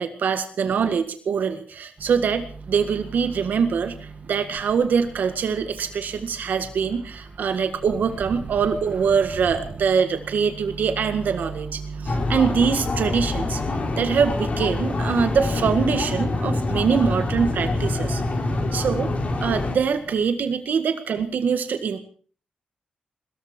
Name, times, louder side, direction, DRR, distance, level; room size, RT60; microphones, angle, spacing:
voice 1, 0.0-13.6 14.0-18.2 18.7-19.1 19.4-22.0, right 6 dB, 85° right, 8 dB, 1.8 m, -23 dB
Microwave oven, 2.0-20.2, right 4 dB, 50° right, 1.9 m, -39 dB
sound 1, 12.0-19.8, left 2 dB, 50° left, 4.7 m, -25 dB
21.5 x 14.0 x 4.5 m, 0.43 s
wide cardioid pair, 100°, 3 cm